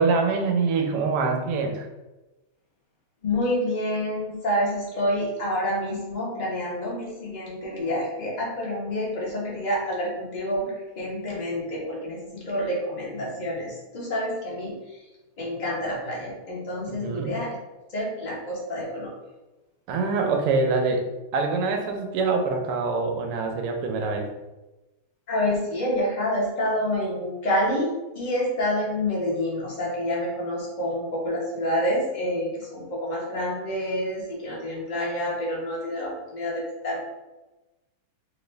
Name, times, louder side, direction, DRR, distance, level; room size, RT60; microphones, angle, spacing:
voice 1, 0.0-1.9 16.9-17.4 19.9-21.1 21.3-24.3, right 4 dB, 90° right, 3 dB, 1.6 m, -24 dB
voice 2, 3.2-14.7 15.4-17.5 17.9-19.1 25.3-27.9 28.1-37.0, equal, 35° left, -5 dB, 0.7 m, -28 dB
4.2 x 2.5 x 3.2 m, 1.1 s
omnidirectional pair, 2.4 m